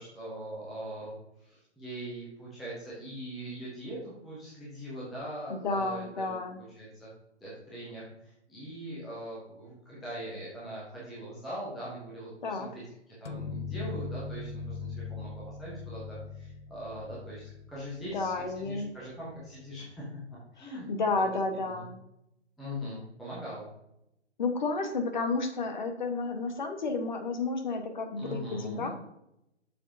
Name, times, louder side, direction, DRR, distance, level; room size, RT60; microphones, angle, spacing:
voice 1, 0.0-6.4 6.8-7.1 7.4-20.2 20.5-20.9 21.7-21.9 22.6-23.7 28.2-28.9, equal, ahead, -8 dB, 0.4 m, -41 dB
voice 2, 5.5-6.6 12.4-12.7 18.1-18.9 20.6-22.0 24.4-28.9, left 3 dB, 40° left, 5 dB, 1.3 m, -31 dB
sound 1, 13.3-18.8, left 5 dB, 75° left, 0.8 m, -40 dB
8.3 x 6.5 x 2.7 m, 0.82 s
hypercardioid pair, 160°, 35 cm